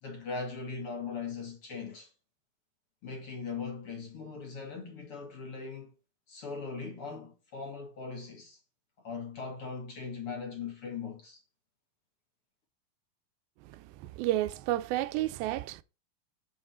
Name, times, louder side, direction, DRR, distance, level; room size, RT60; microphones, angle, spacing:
voice 1, 0.0-2.1 3.0-5.9 6.3-8.6 9.0-11.4, left 5 dB, 45° left, 2.3 m, -40 dB
voice 2, 13.7-15.8, right 15 dB, 85° right, 2.3 m, -31 dB
7.3 x 6.5 x 4.2 m
omnidirectional pair, 4.2 m